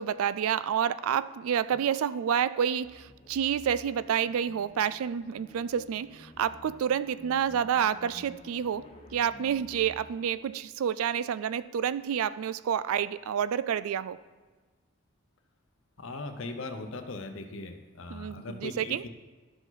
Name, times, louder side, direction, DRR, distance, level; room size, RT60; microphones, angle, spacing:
voice 1, 0.0-14.2 18.1-19.0, right 8 dB, 80° right, 16 dB, 0.3 m, -29 dB
sound 1, 2.8-10.5, left 1 dB, 25° left, 1.0 m, -52 dB
voice 2, 16.0-19.1, left 2 dB, 65° left, 6 dB, 0.8 m, -39 dB
12.5 x 4.8 x 4.0 m, 1.4 s
head